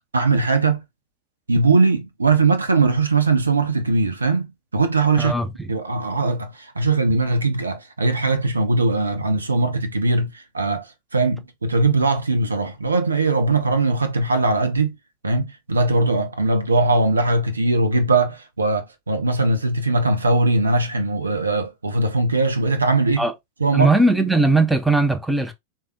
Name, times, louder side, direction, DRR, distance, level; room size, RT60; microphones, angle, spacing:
voice 1, 0.1-0.8 1.5-5.3 5.7-15.0 15.2-23.3 23.6-23.9, right 3 dB, 75° right, 0.5 m, -20 dB
voice 2, 5.2-5.7 23.2-23.3 23.7-25.5, right 2 dB, 5° right, 0.6 m, -19 dB
3.3 x 2.2 x 2.7 m
figure-of-eight pair, 90°, 0 cm